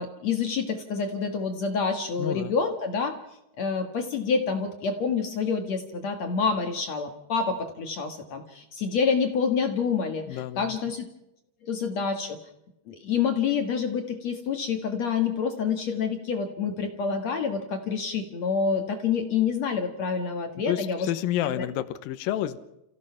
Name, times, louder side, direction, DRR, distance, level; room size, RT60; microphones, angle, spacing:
voice 1, 0.0-3.2 3.6-11.0 11.6-12.4 12.9-21.0 21.6-21.7, left 5 dB, 55° left, 5 dB, 2.2 m, -27 dB
voice 2, 2.2-2.5 10.3-10.8 20.6-22.6, left 12 dB, 70° left, 11 dB, 2.4 m, -29 dB
29.5 x 16.0 x 5.7 m, 0.87 s
omnidirectional pair, 4.8 m